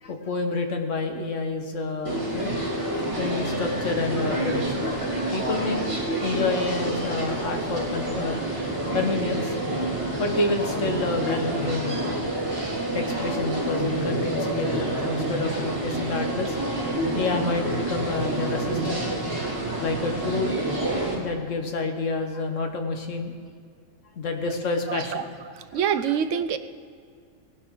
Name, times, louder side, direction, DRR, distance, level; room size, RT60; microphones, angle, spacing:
voice 1, 0.0-4.9 5.3-5.8 6.2-8.4 8.9-9.5 10.2-12.1 12.9-16.6 17.1-19.0 19.8-23.3 24.2-25.8, left 3 dB, 80° left, 4 dB, 1.6 m, -29 dB
sound 1, 2.0-21.1, right 1 dB, 25° right, 2.5 m, -28 dB
voice 2, 24.9-25.2 25.6-26.6, right 8 dB, 80° right, 12 dB, 1.0 m, -26 dB
18.5 x 11.0 x 3.8 m, 2.1 s
omnidirectional pair, 1.3 m